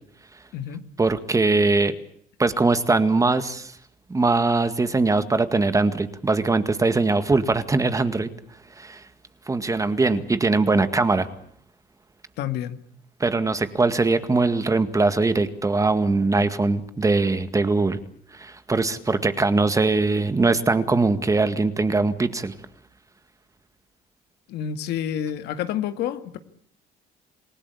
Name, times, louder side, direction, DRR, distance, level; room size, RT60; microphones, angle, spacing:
voice 1, 1.0-1.9 2.4-3.7 4.1-8.3 8.8-9.0 9.5-11.3 13.2-18.0 18.3-22.5, right 3 dB, 20° right, 11 dB, 2.0 m, -21 dB
voice 2, 12.4-12.8 24.5-26.4, left 10 dB, 80° left, 9 dB, 2.1 m, -28 dB
28.0 x 17.0 x 8.5 m, 0.65 s
cardioid pair, 110°, 17 cm